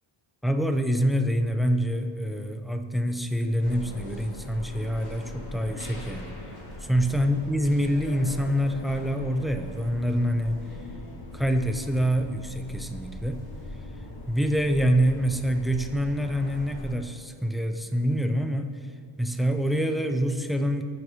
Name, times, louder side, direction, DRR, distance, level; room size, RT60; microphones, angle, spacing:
voice 1, 0.4-6.3 6.9-10.6 11.3-13.4 14.3-18.7 19.2-20.8, equal, ahead, 6 dB, 0.6 m, -26 dB
sound 1, 3.6-16.9, left 1 dB, 50° left, 2.3 m, -40 dB
19.0 x 6.5 x 4.7 m, 2.2 s
wide cardioid pair, 150°, 48 cm